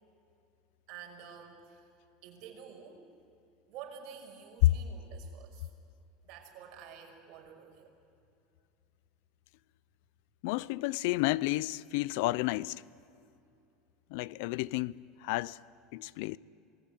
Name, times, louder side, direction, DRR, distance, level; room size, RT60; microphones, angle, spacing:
voice 1, 0.9-1.9 2.2-3.0 3.7-5.7 6.2-7.9, right 7 dB, 55° right, 5.7 m, -49 dB
voice 2, 10.4-12.8 14.1-15.6 15.9-16.4, left 18 dB, 70° left, 0.5 m, -30 dB
27.0 x 20.0 x 9.9 m
supercardioid pair, 130°, 0 cm